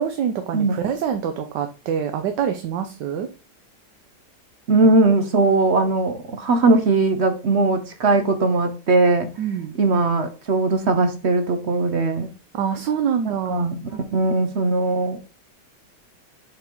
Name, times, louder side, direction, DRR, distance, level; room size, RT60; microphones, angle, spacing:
voice 1, 0.0-3.3 9.4-9.8 12.5-13.6 14.0-14.3, right 8 dB, 80° right, 1.3 m, -25 dB
voice 2, 4.7-9.3 9.8-12.3 13.2-13.8 14.1-15.2, right 3 dB, 55° right, 0.8 m, -19 dB
7.4 x 3.8 x 4.5 m
omnidirectional pair, 1.9 m